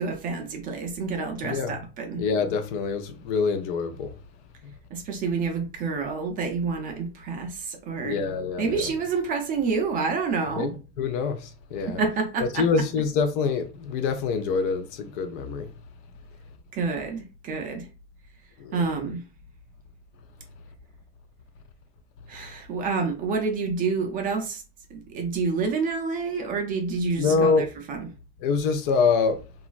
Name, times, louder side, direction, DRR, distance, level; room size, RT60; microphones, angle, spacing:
voice 1, 0.0-2.2 4.9-8.2 8.6-10.7 11.9-12.6 16.7-17.9 18.7-19.2 22.3-24.6 24.9-28.1, right 4 dB, 25° right, 0.4 m, -28 dB
voice 2, 1.4-1.8 2.2-4.1 8.0-8.8 10.5-12.0 12.5-15.7 18.6-18.8 27.2-27.7 28.4-29.4, left 5 dB, 60° left, 0.6 m, -25 dB
2.9 x 2.3 x 2.4 m
supercardioid pair, 150°, 31 cm